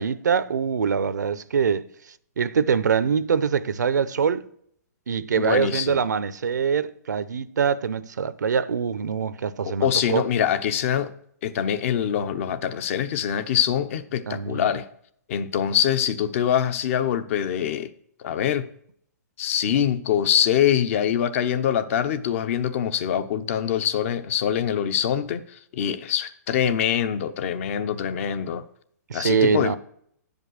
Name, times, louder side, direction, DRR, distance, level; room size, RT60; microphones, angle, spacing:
voice 1, 0.0-1.8 2.4-4.4 5.1-10.2 14.3-14.7 29.1-29.8, right 6 dB, 90° right, 0.7 m, -24 dB
voice 2, 5.3-6.0 9.6-11.1 11.4-14.9 15.3-17.9 18.2-18.7 19.4-25.4 25.7-28.6 29.1-29.8, left 9 dB, 50° left, 0.9 m, -24 dB
11.0 x 5.4 x 6.4 m
hypercardioid pair, 145°, 9 cm